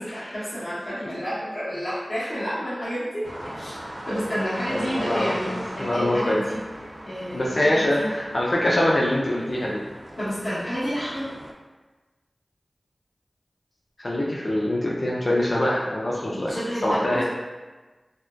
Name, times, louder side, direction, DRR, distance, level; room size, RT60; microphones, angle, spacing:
voice 1, 0.0-3.2 3.6-3.8 4.1-5.5 5.8-6.6 7.0-8.1 10.2-11.3 16.3-17.2, equal, 80° left, -15 dB, 0.8 m, -30 dB
sound 1, 3.2-11.5, right 1 dB, 45° right, 0.4 m, -39 dB
voice 2, 4.7-6.4 7.3-9.8 14.0-16.5 16.8-17.2, left 1 dB, 60° left, -5 dB, 0.3 m, -24 dB
2.6 x 2.1 x 2.2 m, 1.2 s
cardioid pair, 40°, 0 cm